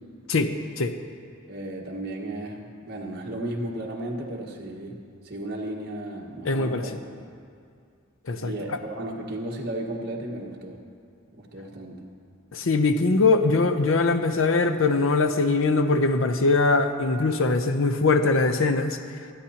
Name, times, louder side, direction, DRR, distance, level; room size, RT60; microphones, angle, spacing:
voice 1, 0.3-0.9 6.4-6.8 8.3-8.5 12.5-19.0, left 3 dB, 70° left, 8 dB, 0.7 m, -22 dB
voice 2, 1.5-5.0 5.2-7.0 8.4-10.8 11.3-12.0, right 1 dB, 50° right, -1 dB, 1.6 m, -34 dB
25.0 x 9.7 x 2.9 m, 2.3 s
head